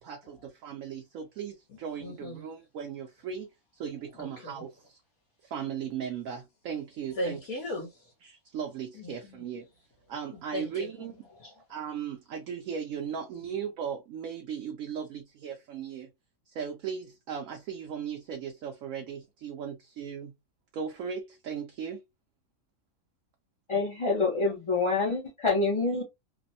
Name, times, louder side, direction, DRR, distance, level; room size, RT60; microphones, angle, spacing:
voice 1, 0.0-5.0 5.4-7.4 8.2-9.7 10.1-11.1 11.7-16.1 16.5-20.3 20.7-22.0, right 7 dB, 70° right, 1.0 m, -37 dB
voice 2, 2.0-2.5 4.2-4.7 7.1-8.1 8.9-9.4 10.5-10.9 11.3-11.6, left 1 dB, 80° left, 1.5 m, -38 dB
voice 3, 23.7-26.0, left 3 dB, 35° left, 0.5 m, -26 dB
3.3 x 2.1 x 2.6 m
omnidirectional pair, 1.5 m